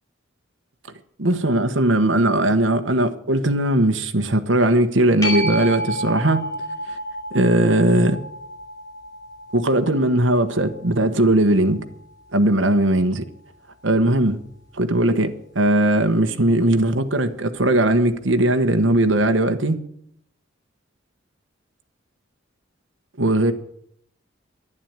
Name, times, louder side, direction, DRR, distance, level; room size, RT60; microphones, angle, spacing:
voice 1, 1.2-6.4 7.3-8.2 9.5-11.8 12.3-13.2 13.8-14.4 14.8-19.8 23.2-23.5, right 1 dB, 70° right, 1.2 m, -19 dB
sound 1, 5.2-12.4 17.9-18.0, equal, 20° left, 4.8 m, -31 dB
11.0 x 11.0 x 9.0 m
head